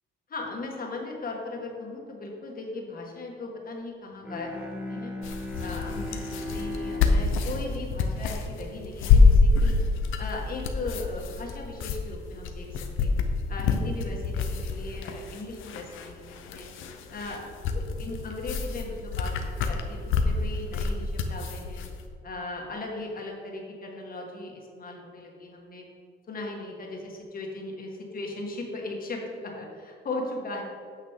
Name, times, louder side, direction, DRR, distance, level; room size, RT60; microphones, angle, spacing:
voice 1, 0.3-5.1 5.6-9.7 10.2-12.7 13.0-13.1 13.5-16.7 17.1-21.8 22.2-25.8 26.3-30.6, left 2 dB, 45° left, 0 dB, 1.8 m, -38 dB
Bowed string instrument, 4.2-9.1, left 1 dB, 5° right, 1.2 m, -38 dB
sound 1, 5.2-22.0, left 4 dB, 85° left, 0.8 m, -26 dB
8.9 x 6.5 x 3.7 m, 2.2 s
cardioid pair, 90°, 20 cm